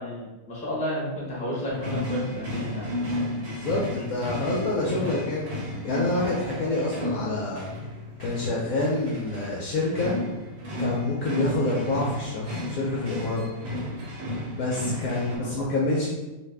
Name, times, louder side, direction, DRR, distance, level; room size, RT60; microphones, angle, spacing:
voice 1, 0.0-2.9 15.4-15.6, left 1 dB, 5° left, -7 dB, 0.7 m, -32 dB
sound 1, 1.7-15.4, left 1 dB, 70° right, 1.1 m, -33 dB
voice 2, 3.4-5.5 5.8-7.7 8.2-10.1 10.8-13.5 14.6-16.1, left 2 dB, 70° left, -4 dB, 0.9 m, -27 dB
2.6 x 2.5 x 3.3 m, 1.1 s
omnidirectional pair, 1.8 m